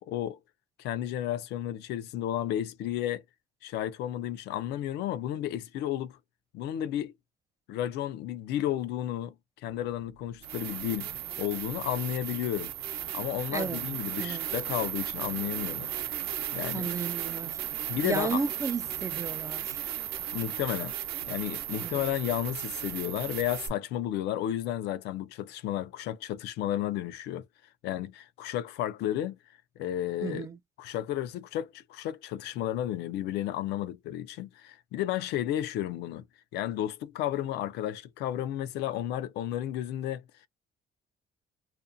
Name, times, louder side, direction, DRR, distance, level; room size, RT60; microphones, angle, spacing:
voice 1, 0.1-0.4 0.8-3.2 3.6-6.2 6.5-7.1 7.7-9.3 9.6-12.7 13.1-16.2 16.5-16.9 17.9-18.4 20.3-20.9 21.2-27.5 27.8-29.4 29.8-30.5 30.8-36.2 36.5-40.2, left 12 dB, 80° left, 0.5 m, -32 dB
sound 1, 9.7-9.8 10.4-23.7, right 11 dB, 75° right, 0.7 m, -35 dB
voice 2, 13.5-13.8 14.2-14.5 16.7-17.6 18.0-19.8 21.8-22.0 30.2-30.6, right 5 dB, 20° right, 0.3 m, -33 dB
2.5 x 2.2 x 2.5 m
cardioid pair, 110°, 17 cm